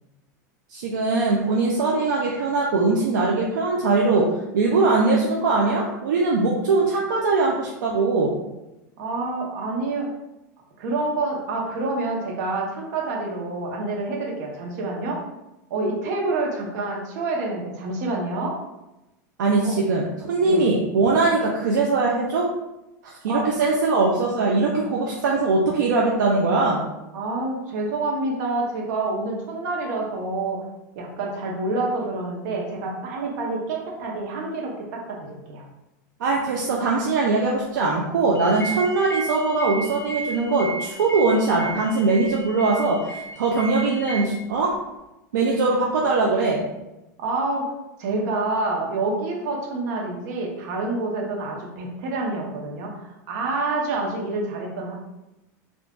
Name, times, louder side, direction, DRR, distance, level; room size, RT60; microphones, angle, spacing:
voice 1, 0.7-8.3 19.4-22.5 23.0-26.8 36.2-44.7 45.3-46.6, right 3 dB, 85° right, -2 dB, 0.4 m, -21 dB
voice 2, 9.0-10.1 10.8-15.2 15.7-18.6 19.6-19.8 20.4-20.7 23.3-23.4 27.1-30.7 30.9-35.6 47.2-47.7 48.0-54.9, right 2 dB, 70° right, -1 dB, 0.9 m, -27 dB
sound 1, 38.3-44.2, right 2 dB, 25° left, 0.7 m, -34 dB
3.6 x 2.4 x 2.3 m, 0.96 s
hypercardioid pair, 110°, 10 cm